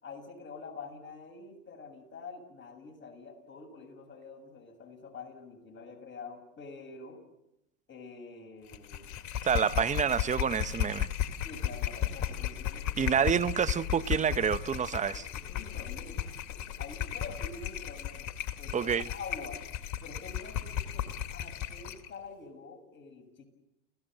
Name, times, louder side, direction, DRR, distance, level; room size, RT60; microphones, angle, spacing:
voice 1, 0.0-7.2 7.9-9.1 11.4-13.2 13.5-13.9 14.9-19.6 20.0-21.1 21.3-23.5, left 4 dB, 25° left, 6.9 m, -47 dB
sound 1, 8.7-22.1, left 10 dB, 45° left, 2.4 m, -35 dB
voice 2, 9.4-11.1 13.0-15.3 18.7-19.1, right 7 dB, 15° right, 0.9 m, -28 dB
29.5 x 16.5 x 7.8 m
hypercardioid pair, 105°, 41 cm